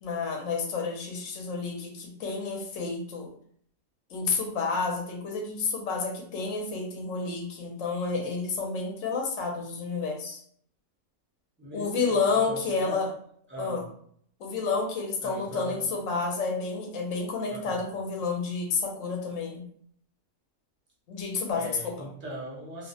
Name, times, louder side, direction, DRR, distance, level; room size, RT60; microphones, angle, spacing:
voice 1, 0.0-3.3 4.1-10.4 11.7-13.1 13.6-13.8 14.4-19.6 21.1-21.9, left 4 dB, 70° left, 0 dB, 0.9 m, -30 dB
voice 2, 11.6-12.2 12.5-13.1 13.5-13.8 15.2-15.8 17.5-17.8 21.6-22.9, equal, 15° right, -6 dB, 0.4 m, -39 dB
2.4 x 2.1 x 2.6 m, 0.62 s
omnidirectional pair, 1.5 m